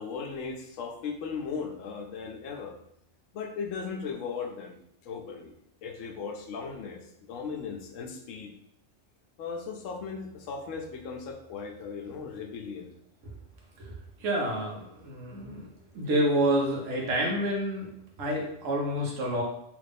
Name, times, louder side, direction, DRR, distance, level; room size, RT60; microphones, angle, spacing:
voice 1, 0.0-2.8 3.3-4.8 5.0-5.5 5.8-8.5 9.4-12.9, left 5 dB, 85° left, 3 dB, 1.0 m, -37 dB
voice 2, 14.2-15.7 15.9-17.9 18.2-19.4, right 1 dB, 85° right, -1 dB, 1.3 m, -28 dB
3.4 x 2.4 x 3.4 m, 0.77 s
omnidirectional pair, 1.3 m